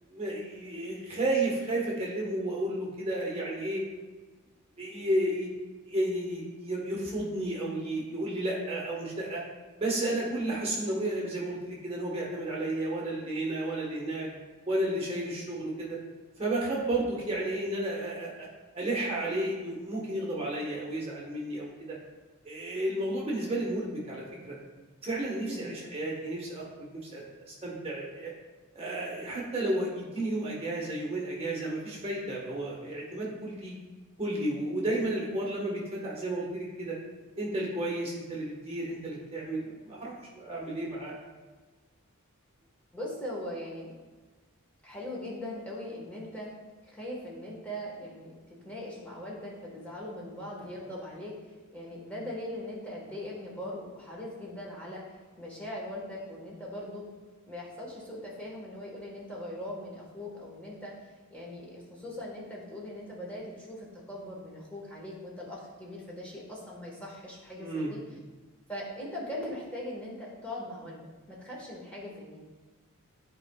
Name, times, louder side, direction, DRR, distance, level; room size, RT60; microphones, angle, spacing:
voice 1, 0.1-3.8 4.8-5.5 5.9-9.4 9.8-14.3 14.7-16.0 16.4-18.5 18.7-22.0 22.4-24.6 25.0-28.3 28.7-33.7 34.2-37.0 37.4-41.1 67.6-67.9, right 1 dB, 25° right, -4 dB, 1.2 m, -32 dB
voice 2, 42.9-44.0 44.8-46.5 46.8-57.1 57.5-68.0 68.7-72.4, left 1 dB, 5° left, -5 dB, 1.2 m, -40 dB
11.5 x 4.5 x 2.3 m, 1.3 s
head